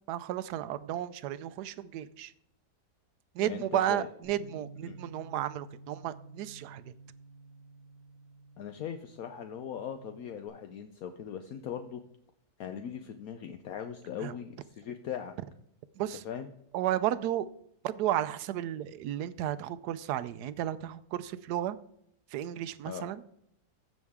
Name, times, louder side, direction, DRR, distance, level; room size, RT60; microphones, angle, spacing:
voice 1, 0.1-2.3 3.3-6.9 14.2-14.3 16.0-16.2 16.7-17.5 17.8-21.8 22.3-23.2, right 12 dB, 85° right, 15 dB, 1.2 m, -33 dB
voice 2, 3.4-4.1 4.9-5.0 8.6-12.0 12.6-15.3 16.2-16.5 22.8-23.1, left 8 dB, 70° left, 7 dB, 1.1 m, -39 dB
Bass guitar, 4.2-10.5, right 3 dB, 90° left, 4.3 m, -52 dB
15.5 x 6.3 x 3.5 m, 0.74 s
omnidirectional pair, 1.7 m